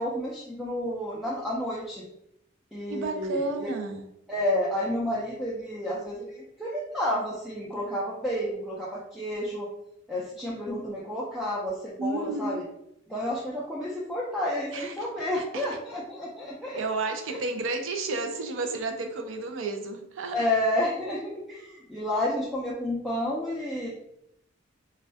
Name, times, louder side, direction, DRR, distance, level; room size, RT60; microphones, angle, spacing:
voice 1, 0.0-2.1 2.7-3.7 4.3-9.7 10.1-12.6 13.1-16.8 20.3-23.9, left 1 dB, ahead, -7 dB, 0.3 m, -30 dB
voice 2, 2.9-4.0 12.0-12.7 14.7-15.6 16.7-20.4, right 3 dB, 85° right, 5 dB, 0.4 m, -32 dB
2.2 x 2.2 x 2.5 m, 0.78 s
head